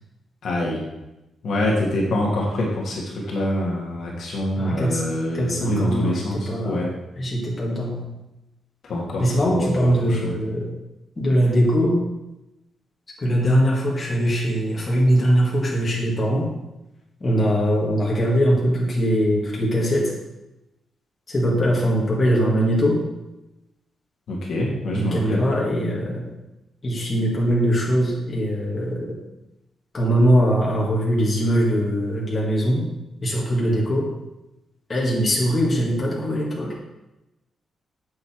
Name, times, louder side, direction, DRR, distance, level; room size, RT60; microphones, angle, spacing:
voice 1, 0.4-0.8 1.4-6.9 8.8-10.3 24.3-25.4, left 1 dB, 55° left, -3 dB, 1.7 m, -25 dB
voice 2, 4.6-5.0 5.3-6.8 7.2-8.0 9.2-10.7 11.2-12.0 13.2-16.5 17.2-20.1 21.3-23.0 24.9-26.2 26.8-29.1 29.9-32.9 33.2-34.1 34.9-36.7, equal, 20° left, -4 dB, 2.0 m, -21 dB
8.0 x 6.5 x 4.5 m, 0.96 s
wide cardioid pair, 175°, 0 cm